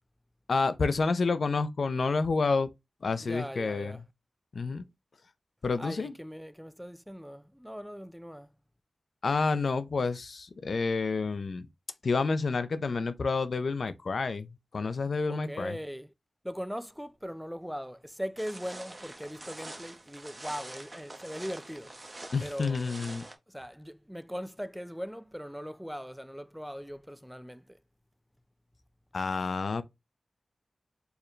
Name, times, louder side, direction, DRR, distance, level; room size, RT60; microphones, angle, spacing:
voice 1, 0.5-2.7 3.0-4.0 4.5-4.8 5.6-6.1 9.2-11.7 12.0-15.7 22.3-23.2 29.1-29.8, left 4 dB, 70° left, 0.4 m, -29 dB
voice 2, 3.2-4.0 5.8-8.5 15.3-16.1 16.4-22.0 22.4-23.0 23.5-27.8, equal, ahead, 0.3 m, -40 dB
sound 1, 18.4-23.4, right 2 dB, 30° right, 0.7 m, -45 dB
4.6 x 2.2 x 3.1 m
wide cardioid pair, 90°, 0 cm